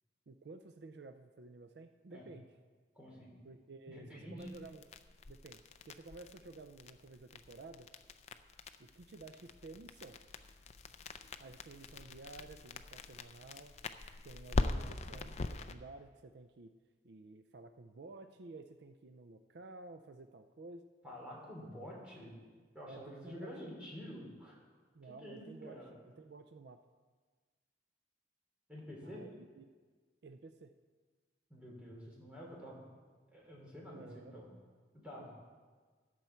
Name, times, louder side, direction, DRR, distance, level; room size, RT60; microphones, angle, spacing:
voice 1, 0.3-2.5 3.4-4.9 5.3-7.9 8.8-10.2 11.4-13.8 14.2-16.7 17.0-20.8 22.8-23.7 24.9-26.8 29.0-29.6 30.2-30.7 33.9-34.4 35.2-35.3, right 3 dB, 65° right, 8 dB, 0.5 m, -53 dB
voice 2, 2.9-3.3 3.9-4.5 21.0-22.3 22.7-24.6 25.0-25.9 28.7-29.2 31.5-32.8 33.3-34.5 34.9-35.3, equal, 5° right, -4 dB, 3.1 m, -49 dB
sound 1, 4.4-15.7, left 2 dB, 35° left, 0.5 m, -42 dB
14.0 x 9.5 x 4.4 m, 1.5 s
head